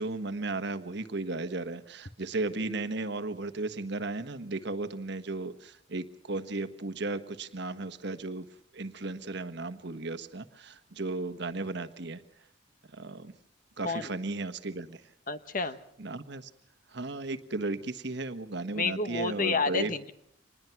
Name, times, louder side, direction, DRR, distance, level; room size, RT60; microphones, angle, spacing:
voice 1, 0.0-8.5 8.7-12.2 12.9-13.3 13.8-15.0 16.0-16.5 16.9-19.9, right 2 dB, 60° right, 10 dB, 1.3 m, -35 dB
voice 2, 15.3-15.8 18.7-20.1, left 4 dB, 45° left, 11 dB, 1.2 m, -30 dB
26.0 x 20.5 x 5.9 m, 0.71 s
head